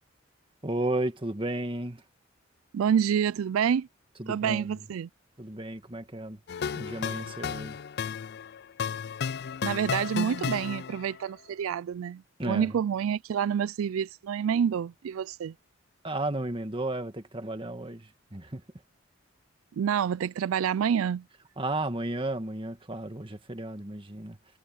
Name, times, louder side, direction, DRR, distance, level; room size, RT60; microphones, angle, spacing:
voice 1, 0.6-2.0 4.2-4.8 5.4-6.4 6.8-7.8 12.4-12.8 16.0-18.6 21.6-24.6, right 1 dB, 25° right, 1.6 m, -33 dB
voice 2, 2.7-3.9 4.3-5.1 9.6-15.5 19.7-21.2, right 8 dB, 90° right, 0.3 m, -28 dB
sound 1, 6.5-11.2, left 7 dB, 50° left, 0.4 m, -33 dB
head